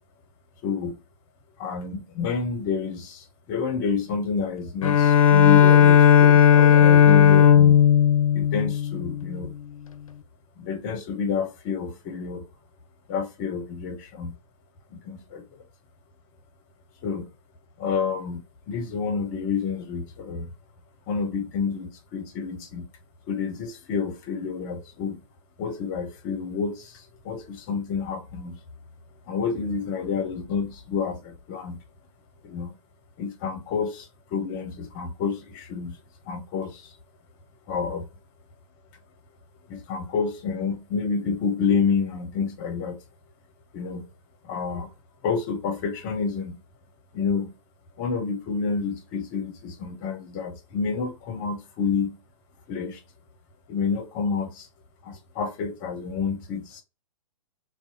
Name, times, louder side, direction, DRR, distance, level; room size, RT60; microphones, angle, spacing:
voice 1, 0.6-1.0 1.6-7.8 8.3-9.5 10.6-12.4 13.1-14.3 14.9-15.4 17.0-17.2 17.8-18.4 18.7-20.5 21.1-22.8 23.3-25.2 25.6-28.6 29.3-31.8 32.4-32.7 33.2-36.0 36.3-36.9 37.7-38.1 39.7-43.0 43.7-44.0 44.5-44.9 45.2-46.5 47.1-47.5 48.0-52.1 52.7-53.0 53.7-54.7 55.0-56.8, left 5 dB, 35° left, 0.6 m, -29 dB
Bowed string instrument, 4.8-9.5, left 8 dB, 75° left, 0.4 m, -15 dB
2.6 x 2.1 x 2.6 m
hypercardioid pair, 120°, 18 cm